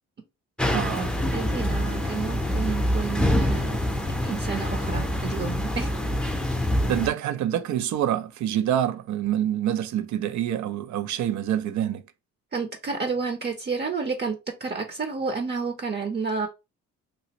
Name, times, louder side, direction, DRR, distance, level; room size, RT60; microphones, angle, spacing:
sound 1, 0.6-7.1, equal, 5° left, 0.5 m, -26 dB
voice 1, 0.7-1.2 6.9-12.0, right 11 dB, 70° right, 0.5 m, -26 dB
voice 2, 1.3-3.8 4.2-5.9 12.5-16.5, right 5 dB, 35° right, 0.7 m, -30 dB
3.0 x 2.5 x 2.9 m
cardioid pair, 90°, 30 cm